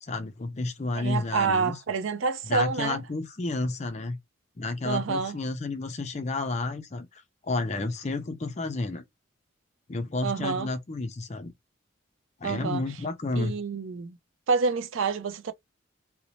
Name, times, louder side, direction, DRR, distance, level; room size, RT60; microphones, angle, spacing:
voice 1, 0.0-1.8 2.5-4.2 4.6-9.0 9.9-11.5 12.4-13.6, left 3 dB, 35° left, 0.4 m, -31 dB
voice 2, 1.0-3.0 4.8-5.4 10.2-10.7 12.4-12.8 13.4-14.2 14.5-15.5, right 5 dB, 90° right, 0.5 m, -28 dB
2.6 x 2.1 x 2.8 m
head